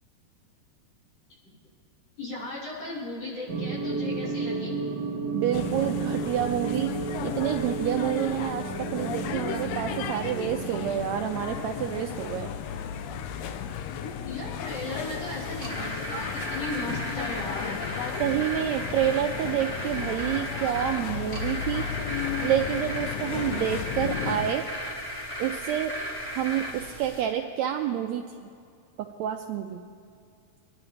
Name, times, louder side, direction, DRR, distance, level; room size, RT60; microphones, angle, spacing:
voice 1, 2.2-4.9 14.0-17.8 22.0-22.1, left 2 dB, 55° left, -8 dB, 5.3 m, -36 dB
sound 1, 3.5-12.4, right 4 dB, 55° right, 1.1 m, -33 dB
voice 2, 5.3-6.9 7.2-12.5 16.1-16.5 18.2-21.8 22.4-24.6 25.4-25.9 26.3-28.5 29.0-29.8, right 10 dB, 80° right, 4 dB, 1.6 m, -28 dB
sound 2, 5.5-24.5, left 8 dB, 80° left, 1.5 m, -34 dB
sound 3, 14.7-27.2, equal, 10° left, 2.1 m, -36 dB
25.0 x 11.0 x 3.2 m, 2.3 s
omnidirectional pair, 3.6 m